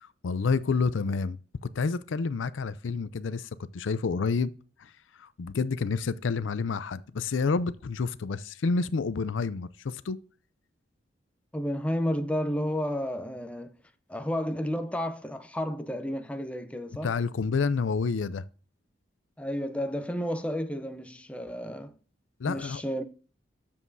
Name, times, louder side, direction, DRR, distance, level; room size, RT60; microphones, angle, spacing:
voice 1, 0.2-4.5 4.8-10.2 17.0-18.4 22.4-22.8, left 4 dB, 85° left, 0.5 m, -29 dB
voice 2, 11.5-13.7 14.1-17.1 19.4-21.9 22.5-23.0, equal, 5° left, 0.6 m, -31 dB
8.4 x 7.3 x 2.6 m
head